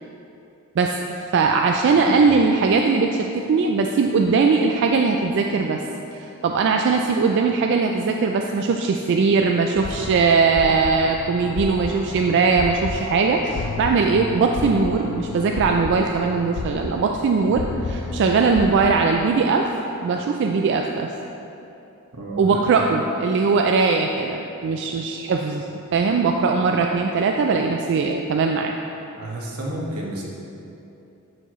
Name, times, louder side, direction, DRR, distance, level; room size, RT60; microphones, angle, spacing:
voice 1, 1.3-5.8 6.2-19.6 20.0-21.1 22.3-28.7, right 4 dB, 55° right, 3 dB, 0.3 m, -20 dB
voice 2, 1.9-2.3 22.1-22.8 29.2-30.2, right 1 dB, 85° right, -3 dB, 1.3 m, -31 dB
sound 1, 9.7-19.1, left 3 dB, 85° left, 0.4 m, -32 dB
10.5 x 4.6 x 3.0 m, 2.9 s
head